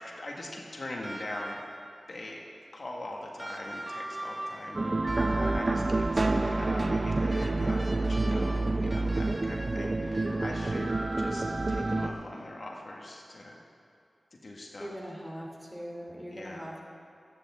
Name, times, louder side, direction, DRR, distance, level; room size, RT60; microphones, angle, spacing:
voice 1, 0.2-1.6 2.1-2.4 2.7-10.9 11.2-13.6 14.3-14.9 16.3-16.7, left 1 dB, 65° left, -1 dB, 1.7 m, -42 dB
sound 1, 1.0-2.0 3.4-6.0 7.3-11.8 13.1-13.2, right 1 dB, 25° right, 2.0 m, -41 dB
sound 2, 4.7-12.1, right 2 dB, 50° right, 0.7 m, -28 dB
voice 2, 8.2-8.9 14.8-16.8, equal, 5° right, -2 dB, 3.1 m, -42 dB
21.0 x 9.8 x 3.7 m, 2.6 s
cardioid pair, 40°, 0 cm